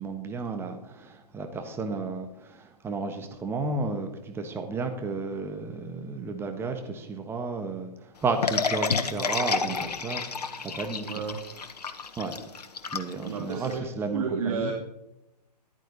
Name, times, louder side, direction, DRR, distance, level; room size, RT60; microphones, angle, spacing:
voice 1, 0.0-7.9 8.2-11.0 12.2-12.3 12.9-14.7, right 3 dB, 10° right, 5 dB, 1.4 m, -33 dB
sound 1, 8.4-13.7, left 5 dB, 70° left, 1.6 m, -30 dB
voice 2, 11.0-11.4 13.2-14.7, right 5 dB, 55° right, 1 dB, 2.4 m, -32 dB
14.0 x 12.5 x 4.0 m, 0.88 s
hypercardioid pair, 130°, 21 cm